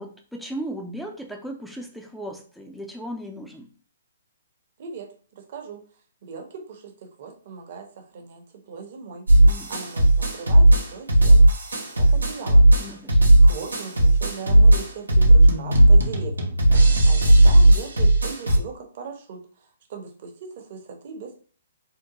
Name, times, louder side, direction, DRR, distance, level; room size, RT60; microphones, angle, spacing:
voice 1, 0.0-3.7 9.4-9.7 12.8-13.2 16.7-17.0, right 1 dB, ahead, 2 dB, 0.5 m, -36 dB
voice 2, 4.8-5.9 6.2-9.3 9.7-11.5 11.9-12.7 13.4-16.6 17.0-21.4, right 5 dB, 50° right, 2 dB, 0.9 m, -39 dB
sound 1, 9.3-18.6, right 1 dB, 90° right, 0.8 m, -15 dB
3.6 x 2.1 x 2.9 m, 0.44 s
hypercardioid pair, 135°, 0 cm